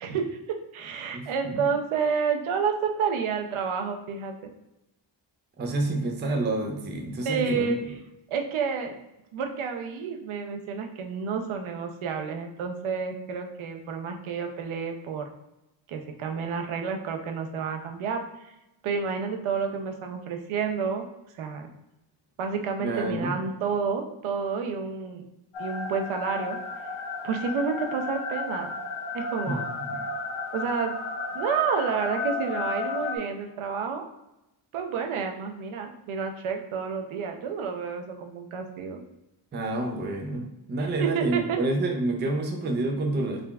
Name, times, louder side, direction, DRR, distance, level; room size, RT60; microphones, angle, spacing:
voice 1, 0.0-4.3 7.3-7.8 8.3-8.9 9.3-15.3 15.9-18.2 18.8-21.1 21.4-21.7 22.4-25.2 25.6-26.6 27.2-28.7 29.1-29.7 30.5-30.9 31.3-34.1 34.7-39.0 41.0-41.6, right 6 dB, 85° right, 4 dB, 0.7 m, -30 dB
voice 2, 1.1-1.7 5.6-7.7 22.8-23.4 29.5-30.1 39.5-43.5, right 2 dB, 25° right, 2 dB, 0.4 m, -29 dB
sound 1, 25.5-33.2, left 3 dB, 75° left, 0.6 m, -33 dB
3.7 x 3.3 x 2.3 m, 0.93 s
wide cardioid pair, 150°, 47 cm